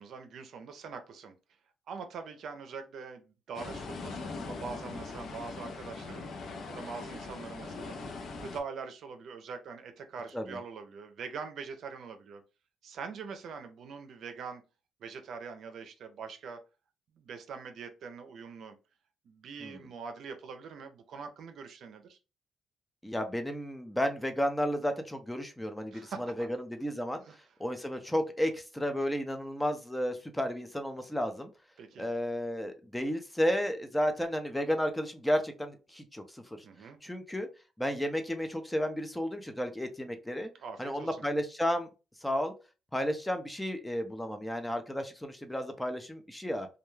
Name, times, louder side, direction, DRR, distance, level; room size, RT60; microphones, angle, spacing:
voice 1, 0.0-1.3 1.9-6.3 6.7-7.9 8.4-12.4 12.8-14.6 15.0-16.6 17.2-18.8 19.2-22.2 25.9-26.5 27.2-27.4 31.8-32.1 36.6-37.0 40.6-41.1, right 5 dB, 70° right, 7 dB, 0.5 m, -43 dB
sound 1, 3.5-8.6, left 3 dB, 70° left, 0.6 m, -41 dB
voice 2, 23.0-26.1 26.4-27.2 27.6-31.5 32.0-36.6 37.0-37.5 37.8-40.5 40.8-41.9 42.2-42.5 42.9-46.7, equal, 5° left, 7 dB, 0.5 m, -32 dB
2.3 x 2.2 x 3.1 m, 0.30 s
cardioid pair, 90°, 0 cm